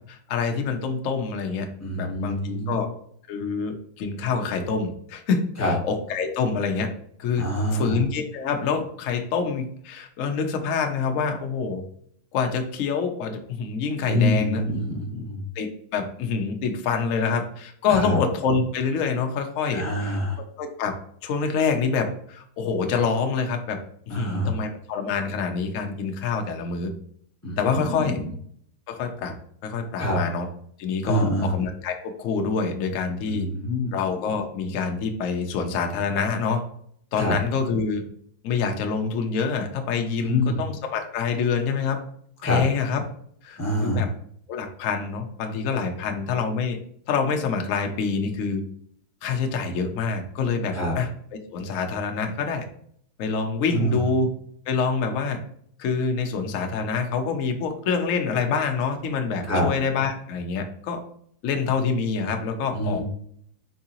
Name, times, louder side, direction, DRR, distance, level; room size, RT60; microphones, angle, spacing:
voice 1, 0.1-1.7 1.9-2.9 3.3-6.9 7.2-7.4 7.7-11.8 12.3-14.6 15.6-20.2 20.6-23.8 24.1-26.9 27.6-28.2 28.9-29.3 29.6-30.5 30.8-33.5 33.9-36.6 37.1-38.0 38.4-42.0 42.4-43.0 43.4-44.1 44.5-46.8 47.1-48.6 49.2-52.7 53.2-54.3 54.7-55.4 55.8-61.0 61.4-63.0, left 5 dB, 80° left, 5 dB, 0.7 m, -26 dB
voice 2, 1.8-2.8 5.6-5.7 7.4-8.0 14.1-15.4 17.9-18.2 19.7-20.4 24.1-24.6 27.4-28.3 30.0-30.2 31.0-31.5 33.3-33.9 37.1-37.3 40.2-40.6 42.4-42.6 43.6-44.1 50.7-50.9 53.7-54.0 59.4-59.7 62.7-63.0, equal, 20° left, -2 dB, 0.5 m, -25 dB
4.6 x 3.7 x 2.9 m, 0.63 s
omnidirectional pair, 2.2 m